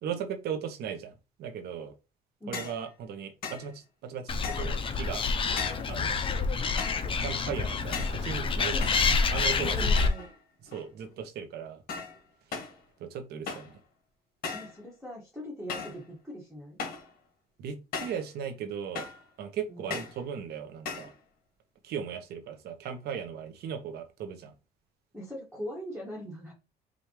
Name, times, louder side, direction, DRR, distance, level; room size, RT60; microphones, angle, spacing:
voice 1, 0.0-1.9 2.5-5.2 5.9-6.2 7.2-8.9 9.3-9.7 10.6-11.8 12.5-12.6 13.0-13.8 17.6-19.1 19.4-21.1 21.8-24.5, right 7 dB, 75° right, 1.0 m, -37 dB
sound 1, 2.5-2.8 3.4-3.7 4.4-4.8 5.6-5.9 6.8-7.1 7.9-8.2 8.8-9.5 10.0-10.3 10.7-11.1 11.9-12.2 12.5-12.8 13.5-13.8 14.4-14.8 15.7-16.0 16.8-17.1 17.9-18.3 18.9-19.3 19.9-20.2 20.8-21.1, left 5 dB, 60° left, 1.4 m, -38 dB
Animal, 4.3-10.1, left 4 dB, 30° left, 0.6 m, -28 dB
voice 2, 9.5-10.3 14.5-16.8 19.7-19.9 25.1-26.5, equal, ahead, 1.7 m, -41 dB
5.0 x 2.6 x 3.0 m
cardioid pair, 110°, 17 cm